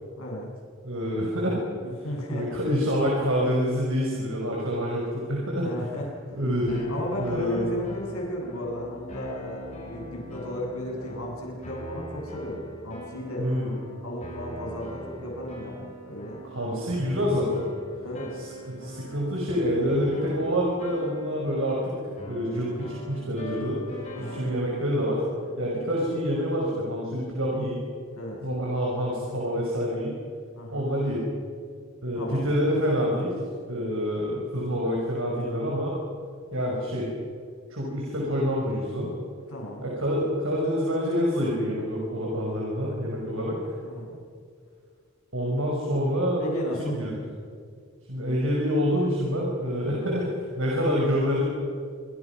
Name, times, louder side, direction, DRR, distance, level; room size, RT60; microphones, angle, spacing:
voice 1, 0.2-0.5 1.8-2.6 5.6-6.4 6.9-13.5 14.0-16.4 16.7-16.8 18.0-18.3 24.1-24.4 28.2-28.4 30.6-30.9 32.1-32.5 39.5-39.9 43.8-44.2 46.4-47.0, equal, 85° left, -1 dB, 7.7 m, -34 dB
voice 2, 0.8-1.6 2.3-5.7 6.3-6.9 7.2-7.7 13.4-13.7 16.4-17.6 18.3-22.0 22.3-23.8 24.2-25.2 25.6-27.8 28.4-30.2 30.7-31.2 32.0-33.3 33.7-36.0 36.5-37.1 37.7-39.1 39.8-43.6 45.3-46.4 46.8-47.1 48.1-51.5, equal, 70° right, -2 dB, 5.8 m, -27 dB
sound 1, 6.7-25.9, equal, 35° left, 5.5 m, -42 dB
26.5 x 25.0 x 6.1 m, 2.2 s
head